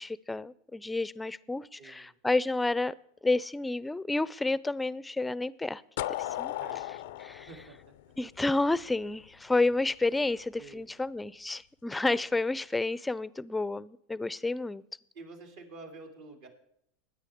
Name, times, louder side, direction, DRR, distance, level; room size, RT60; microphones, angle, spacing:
voice 1, 0.0-2.9 3.2-5.8 6.2-6.5 7.2-7.5 8.2-14.8, left 2 dB, 10° left, 19 dB, 0.5 m, -30 dB
voice 2, 1.8-2.1 6.3-7.2 7.5-8.1 10.5-10.9 15.1-16.5, right 3 dB, 70° right, 2 dB, 3.1 m, -49 dB
sound 1, 6.0-8.8, left 14 dB, 70° left, 0.4 m, -36 dB
22.0 x 9.6 x 3.6 m, 0.74 s
hypercardioid pair, 95°, 0 cm